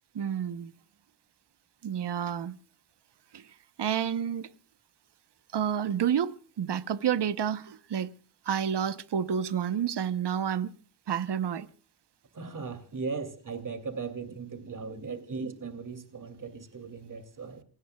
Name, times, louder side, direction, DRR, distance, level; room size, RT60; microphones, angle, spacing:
voice 1, 0.1-0.7 1.8-2.6 3.3-3.5 3.8-4.5 5.5-8.1 8.5-10.7 11.1-11.7, right 8 dB, 75° right, 1.0 m, -29 dB
voice 2, 12.3-17.6, right 4 dB, 45° right, 2.9 m, -38 dB
28.0 x 18.0 x 2.3 m
wide cardioid pair, 100°, 42 cm